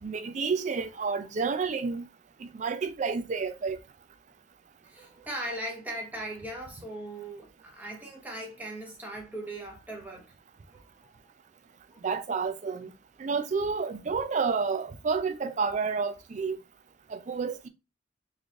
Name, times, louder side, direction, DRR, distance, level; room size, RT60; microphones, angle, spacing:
voice 1, 0.0-2.1 2.4-3.8 12.0-12.9 13.2-16.6 17.1-17.7, right 5 dB, 40° right, 0.4 m, -30 dB
voice 2, 0.7-1.3 4.8-10.3 10.7-10.8 11.9-12.0, right 1 dB, 10° right, 1.0 m, -39 dB
3.9 x 3.1 x 2.3 m
head